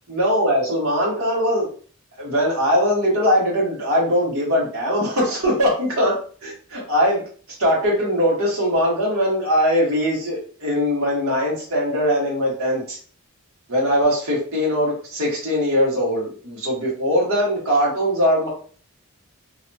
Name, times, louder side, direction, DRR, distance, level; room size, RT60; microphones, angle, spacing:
voice 1, 0.1-1.7 2.2-6.1 6.4-7.2 7.6-13.0 13.7-18.5, equal, 70° right, -4 dB, 1.3 m, -21 dB
2.7 x 2.7 x 2.2 m, 0.43 s
head